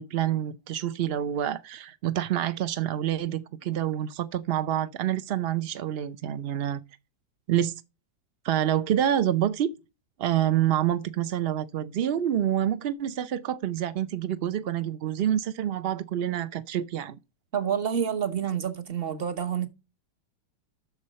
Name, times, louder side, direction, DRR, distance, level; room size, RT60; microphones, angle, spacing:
voice 1, 0.0-6.8 7.5-7.7 8.4-9.7 10.2-17.2, right 11 dB, 85° right, 0.5 m, -27 dB
voice 2, 17.5-19.7, right 8 dB, 40° right, 1.1 m, -28 dB
7.0 x 6.6 x 5.5 m
omnidirectional pair, 1.8 m